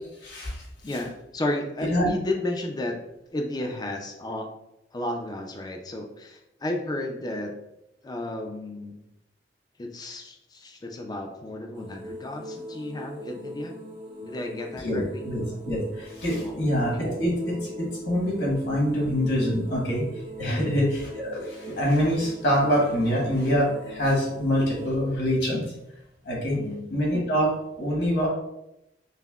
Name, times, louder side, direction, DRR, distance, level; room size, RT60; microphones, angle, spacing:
voice 1, 0.2-0.6 1.9-2.1 14.8-20.0 20.4-25.6 26.2-26.6 26.9-28.3, equal, 65° left, -3 dB, 1.3 m, -25 dB
voice 2, 0.8-3.0 3.3-4.5 4.9-7.5 8.0-9.0 9.8-13.7 14.2-15.2 16.4-16.7 16.9-17.1 20.5-20.8 26.5-26.9, left 1 dB, 25° left, 3 dB, 0.4 m, -33 dB
sound 1, 11.7-24.9, equal, 50° right, 1.3 m, -41 dB
5.4 x 2.1 x 2.3 m, 0.86 s
head